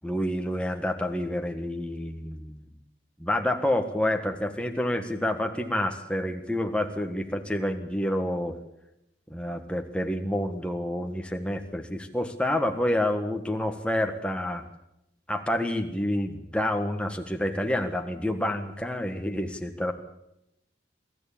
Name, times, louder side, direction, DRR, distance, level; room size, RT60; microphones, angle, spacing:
voice 1, 0.0-2.6 3.2-8.6 9.3-14.7 15.3-19.9, left 1 dB, 5° left, 5 dB, 1.5 m, -28 dB
23.5 x 13.5 x 8.7 m, 0.87 s
head